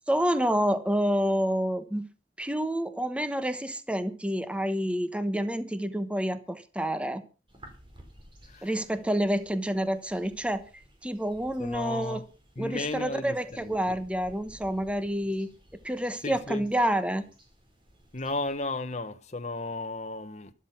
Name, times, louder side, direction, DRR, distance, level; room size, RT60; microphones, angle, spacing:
voice 1, 0.1-2.1 2.4-7.2 8.6-10.7 11.0-12.2 12.6-15.5 15.8-17.2, equal, 5° right, 1.0 m, -28 dB
sound 1, 7.5-18.6, equal, 30° right, 4.5 m, -55 dB
voice 2, 11.6-12.3 12.6-13.8 16.2-16.6 18.1-20.5, left 2 dB, 40° left, 1.1 m, -34 dB
12.5 x 12.5 x 5.9 m
head